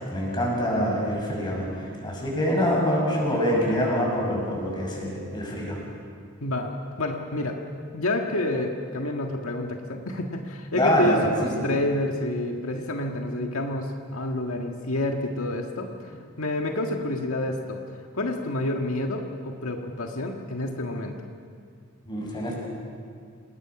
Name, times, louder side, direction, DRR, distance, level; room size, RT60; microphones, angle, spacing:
voice 1, 0.0-5.8 10.7-11.5 22.1-22.5, equal, 20° left, -2 dB, 6.5 m, -25 dB
voice 2, 6.4-6.7 7.0-7.6 7.9-17.8 18.1-21.1, left 1 dB, 85° left, 2 dB, 1.7 m, -29 dB
28.0 x 20.0 x 6.0 m, 2.3 s
head